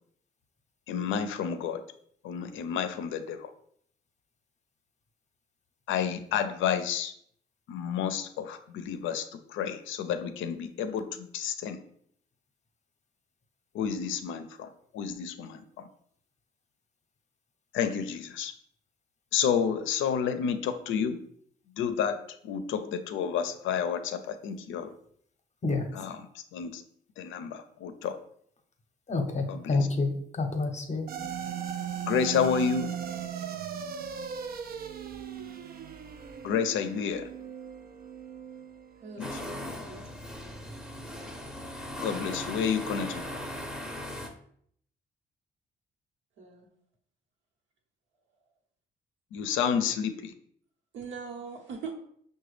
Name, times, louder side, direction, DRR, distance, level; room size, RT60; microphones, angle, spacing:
voice 1, 0.9-1.8 2.2-3.5 5.9-7.1 7.7-11.8 13.7-14.7 14.9-15.9 17.7-18.5 19.3-21.2 21.8-24.9 25.9-26.8 27.2-28.2 29.5-29.8 32.0-32.9 36.4-37.3 39.2-39.4 42.0-43.4 49.3-50.3, left 7 dB, 80° left, 9 dB, 0.5 m, -30 dB
voice 2, 29.1-31.1, left 3 dB, 35° left, 5 dB, 0.7 m, -28 dB
sound 1, 31.1-39.6, right 8 dB, 50° right, 0.4 m, -38 dB
voice 3, 39.0-40.0 40.4-40.7 46.4-46.7 50.9-51.9, right 5 dB, 70° right, -1 dB, 1.0 m, -42 dB
sound 2, 39.2-44.3, left 1 dB, 5° right, 0.7 m, -38 dB
5.7 x 2.2 x 3.2 m, 0.65 s
cardioid pair, 90°, 20 cm